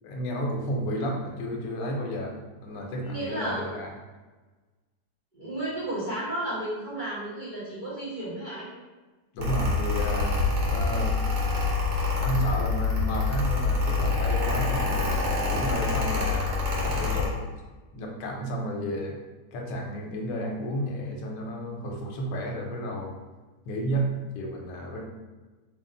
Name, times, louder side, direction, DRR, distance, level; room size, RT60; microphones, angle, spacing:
voice 1, 0.0-3.9 9.3-10.3 10.6-11.2 12.2-17.5 17.9-19.2 19.5-23.2 23.7-25.0, right 1 dB, 80° left, 1 dB, 1.3 m, -32 dB
voice 2, 3.0-3.7 5.3-8.7 16.9-17.1, right 1 dB, 35° right, -11 dB, 1.0 m, -33 dB
Mechanical fan, 9.4-17.3, left 3 dB, 70° right, 1.3 m, -26 dB
3.3 x 2.4 x 3.7 m, 1.2 s
omnidirectional pair, 1.9 m